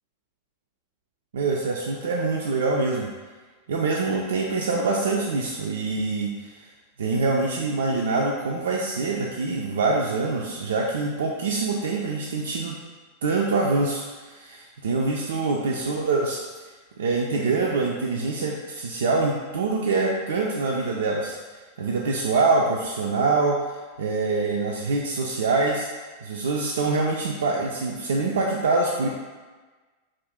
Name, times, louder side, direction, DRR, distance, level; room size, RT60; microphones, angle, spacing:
voice 1, 1.3-3.1 3.7-6.7 7.0-12.8 13.2-16.4 17.0-21.4 21.8-23.6 24.0-25.9 26.2-29.1, right 3 dB, 65° right, -2 dB, 0.3 m, -25 dB
2.5 x 2.5 x 3.4 m, 1.3 s
figure-of-eight pair, 90°, 0 cm